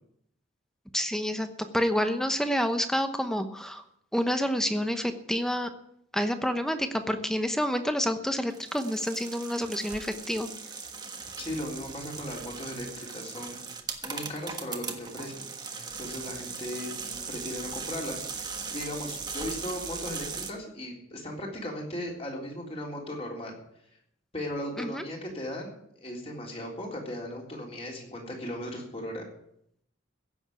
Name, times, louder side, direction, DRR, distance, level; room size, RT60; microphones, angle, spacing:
voice 1, 0.9-1.5 1.7-3.8 4.1-5.7 6.1-10.5 24.8-25.0, equal, 5° left, 8 dB, 0.9 m, -28 dB
sound 1, 8.5-20.5, right 5 dB, 20° right, 1.4 m, -39 dB
voice 2, 11.4-13.6 14.0-23.5 24.3-29.3, left 1 dB, 30° left, -1 dB, 3.6 m, -37 dB
16.0 x 7.2 x 9.4 m, 0.74 s
head